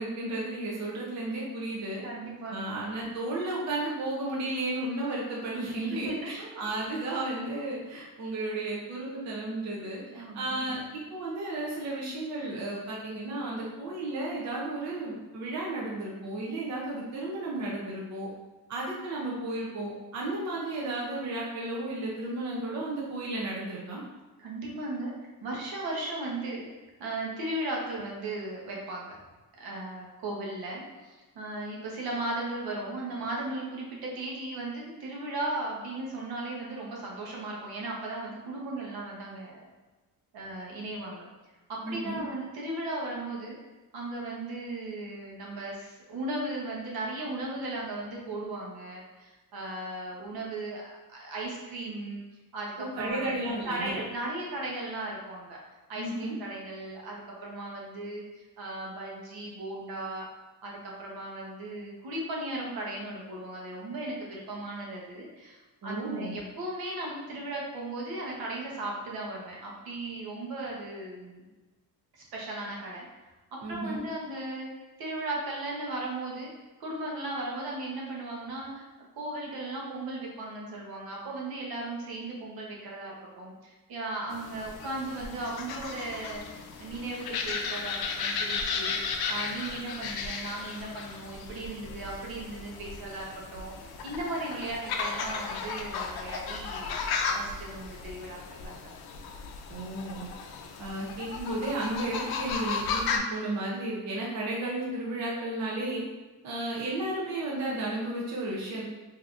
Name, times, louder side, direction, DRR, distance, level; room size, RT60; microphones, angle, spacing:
voice 1, 0.0-2.0 2.5-18.3 18.7-24.0 41.8-42.2 53.0-54.0 55.9-56.4 65.8-66.4 73.6-74.0 99.7-100.3 100.8-106.0 106.4-108.8, right 2 dB, 50° right, -4 dB, 0.6 m, -33 dB
voice 2, 2.0-2.8 5.7-6.5 10.1-10.6 24.4-25.1 25.4-26.6 27.0-29.2 29.6-39.6 40.3-41.3 41.7-43.6 43.9-52.2 52.5-53.4 53.7-55.6 55.9-60.3 60.6-71.5 72.1-73.0 73.7-74.7 75.0-76.5 76.8-98.9, right 2 dB, 85° right, -3 dB, 0.9 m, -36 dB
sound 1, 84.3-103.2, left 5 dB, 85° left, 0.5 m, -35 dB
3.5 x 2.8 x 2.4 m, 1.2 s
cardioid pair, 180°, 36 cm